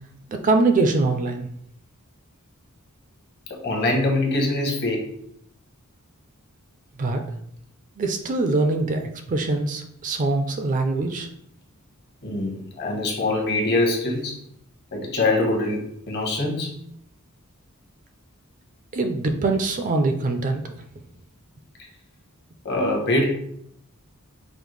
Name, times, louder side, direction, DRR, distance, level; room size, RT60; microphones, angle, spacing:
voice 1, 0.3-1.5 7.0-7.2 8.0-11.3 18.9-20.6, right 3 dB, 35° right, 5 dB, 0.4 m, -23 dB
voice 2, 3.6-5.0 8.5-8.6 12.2-14.4 14.9-15.8 16.1-16.7 22.6-23.3, left 2 dB, 50° left, 1 dB, 0.9 m, -23 dB
5.1 x 2.1 x 3.1 m, 0.70 s
head